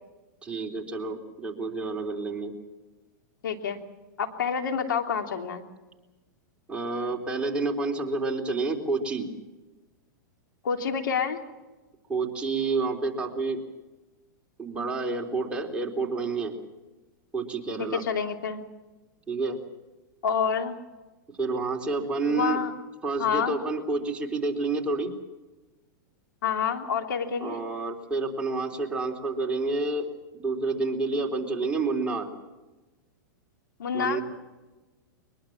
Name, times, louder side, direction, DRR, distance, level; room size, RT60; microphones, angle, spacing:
voice 1, 0.4-2.5 6.7-9.3 12.1-13.6 14.6-16.6 17.3-18.0 19.3-19.6 21.4-22.6 23.0-25.1 27.4-32.3 33.9-34.2, right 3 dB, 10° right, -1 dB, 3.8 m, -29 dB
voice 2, 3.4-3.8 4.2-5.6 10.6-11.4 17.8-18.6 20.2-20.8 22.3-22.7 23.2-23.6 26.4-27.6 33.8-34.2, left 6 dB, 80° left, 5 dB, 3.1 m, -28 dB
23.0 x 21.5 x 7.4 m, 1.2 s
hypercardioid pair, 120°, 11 cm